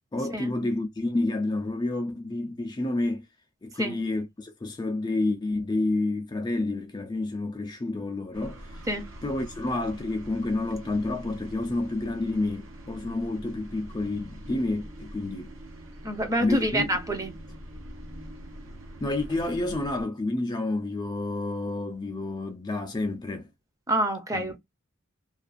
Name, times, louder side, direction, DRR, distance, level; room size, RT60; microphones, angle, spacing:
voice 1, 0.1-3.3 3.6-8.8 9.2-15.5 16.4-16.9 19.0-23.5 24.3-24.6, left 2 dB, 20° left, 0.4 m, -29 dB
sound 1, 8.3-20.0, right 1 dB, 70° right, 0.7 m, -44 dB
voice 2, 16.0-17.4 23.9-24.6, right 1 dB, 15° right, 0.6 m, -27 dB
2.4 x 2.3 x 2.3 m
head